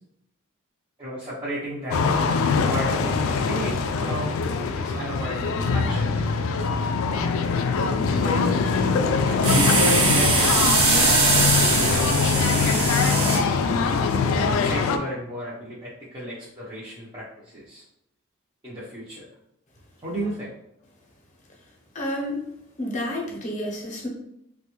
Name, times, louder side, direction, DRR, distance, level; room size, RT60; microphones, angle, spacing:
voice 1, 1.0-2.0 2.5-6.1 8.1-8.6 9.3-11.5 12.7-13.4 14.6-17.8 18.6-19.2 20.0-20.5, equal, 20° right, -9 dB, 0.6 m, -33 dB
sound 1, 1.9-15.0, left 4 dB, 75° left, 0.3 m, -23 dB
sound 2, 9.4-13.4, right 3 dB, 90° right, 0.8 m, -21 dB
voice 2, 21.9-22.4 22.8-24.1, left 1 dB, 35° left, -2 dB, 0.7 m, -30 dB
3.2 x 2.3 x 2.9 m, 0.82 s
head